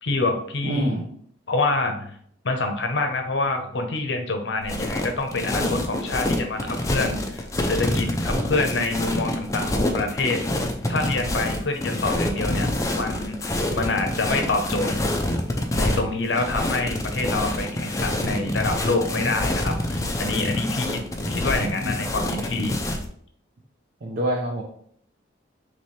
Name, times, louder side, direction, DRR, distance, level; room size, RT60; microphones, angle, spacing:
voice 1, 0.0-0.9 1.5-2.2 2.4-14.9 15.7-22.8, left 3 dB, 65° left, 5 dB, 0.7 m, -27 dB
voice 2, 0.6-1.1 21.6-21.9 24.0-24.6, right 1 dB, 50° right, -1 dB, 0.6 m, -26 dB
sound 1, 4.6-23.1, left 1 dB, 15° left, 0.4 m, -26 dB
4.3 x 3.1 x 3.1 m, 0.64 s
head